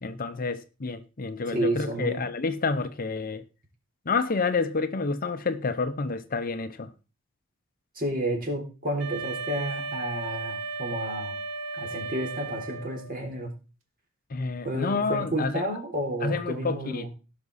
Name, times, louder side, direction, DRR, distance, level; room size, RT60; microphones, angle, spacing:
voice 1, 0.0-3.4 4.1-6.9 14.3-15.5 16.2-17.1, left 4 dB, 45° left, 0.7 m, -29 dB
voice 2, 1.5-2.2 8.0-11.3 11.7-13.5 14.6-17.1, right 1 dB, 45° right, 3.8 m, -31 dB
Wind instrument woodwind instrument, 9.0-13.2, right 4 dB, 85° right, 1.8 m, -35 dB
17.0 x 6.0 x 4.1 m
head